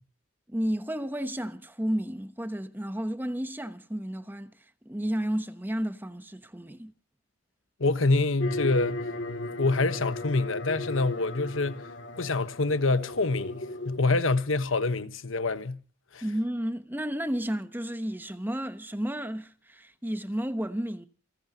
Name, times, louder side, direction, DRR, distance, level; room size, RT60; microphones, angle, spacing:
voice 1, 0.5-4.5 4.8-6.9 16.2-21.1, equal, 10° right, 1.0 m, -32 dB
voice 2, 7.8-9.0 9.6-11.9 12.2-15.8 16.1-16.2, left 3 dB, 80° left, 1.2 m, -26 dB
sound 1, 8.4-14.0, left 2 dB, 60° left, 2.5 m, -36 dB
29.0 x 14.0 x 2.8 m
head